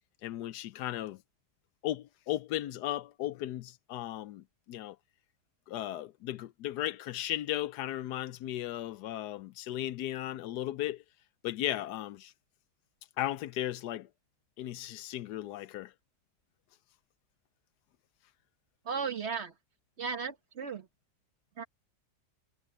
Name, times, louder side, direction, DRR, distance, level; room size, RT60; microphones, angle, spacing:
voice 1, 0.2-1.2 1.8-5.0 5.7-11.0 11.4-12.3 13.2-14.1 14.6-15.9, left 13 dB, 80° left, 1.2 m, -36 dB
voice 2, 18.8-19.5 20.0-20.9 21.6-21.7, right 6 dB, 45° right, 1.3 m, -35 dB
omnidirectional pair, 1.7 m